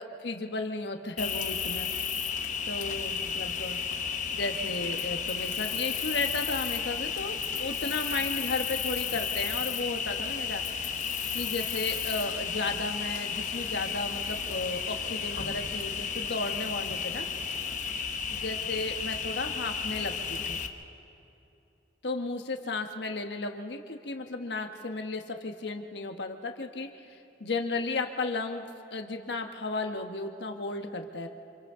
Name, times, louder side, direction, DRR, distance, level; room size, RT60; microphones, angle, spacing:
voice 1, 0.0-1.9 2.7-3.8 4.3-10.6 11.3-17.3 18.3-20.6 22.0-28.6 28.9-31.3, left 3 dB, 75° left, 5 dB, 1.2 m, -34 dB
Cricket, 1.2-20.7, left 7 dB, 45° left, 1.0 m, -33 dB
29.0 x 26.0 x 3.7 m, 2.8 s
head